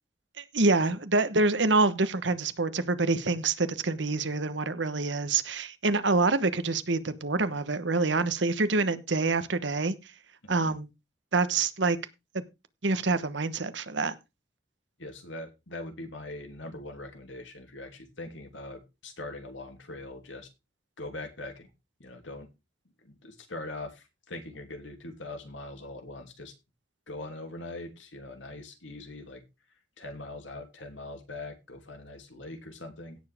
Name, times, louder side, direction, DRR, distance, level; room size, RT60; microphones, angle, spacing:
voice 1, 0.4-10.0 10.5-10.9 11.3-12.0 12.3-12.4 12.8-14.1, right 3 dB, 75° right, 1.1 m, -26 dB
voice 2, 10.4-10.7 15.0-20.5 21.0-21.7 22.0-22.5 23.0-26.5 27.1-29.4 30.0-33.2, left 2 dB, 85° left, 2.9 m, -42 dB
17.0 x 7.1 x 3.6 m
head